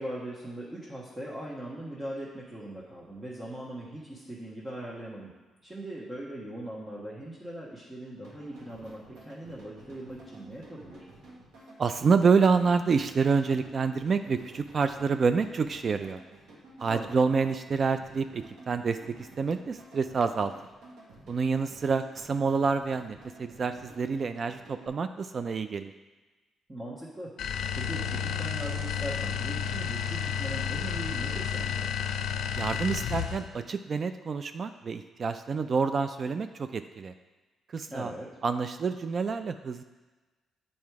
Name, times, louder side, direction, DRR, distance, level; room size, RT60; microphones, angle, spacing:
voice 1, 0.0-5.3 5.6-11.0 16.9-17.3 26.7-27.3 27.7-31.9 37.9-38.3, right 1 dB, 20° right, -7 dB, 1.3 m, -40 dB
sound 1, 8.2-24.9, right 1 dB, 75° right, 1.4 m, -51 dB
voice 2, 11.8-16.2 16.8-20.5 21.3-25.9 32.6-37.1 37.7-38.1 38.4-39.8, right 5 dB, 45° right, 10 dB, 0.3 m, -27 dB
sound 2, 27.4-33.5, left 7 dB, 65° left, 0.5 m, -31 dB
7.5 x 4.3 x 4.7 m, 1.2 s
cardioid pair, 90°, 0 cm